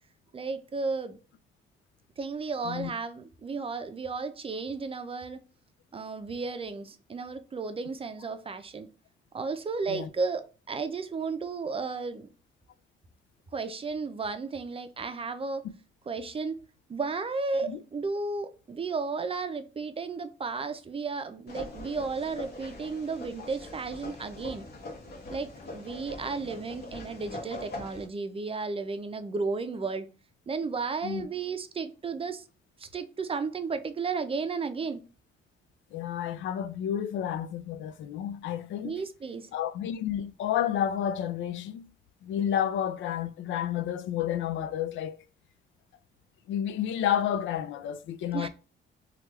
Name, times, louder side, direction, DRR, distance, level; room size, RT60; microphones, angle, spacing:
voice 1, 0.3-1.2 2.2-5.4 5.9-8.9 9.3-12.3 13.5-15.6 16.1-16.6 16.9-24.6 25.3-30.1 30.5-32.4 32.8-35.0 38.8-39.5 48.3-48.5, right 4 dB, 30° right, 0.5 m, -33 dB
sound 1, 21.5-28.1, left 1 dB, 55° left, 1.1 m, -42 dB
voice 2, 35.9-38.9 39.5-41.9 42.2-45.2 46.5-48.5, left 10 dB, 75° left, 0.4 m, -30 dB
3.3 x 2.4 x 3.0 m
cardioid pair, 90°, 20 cm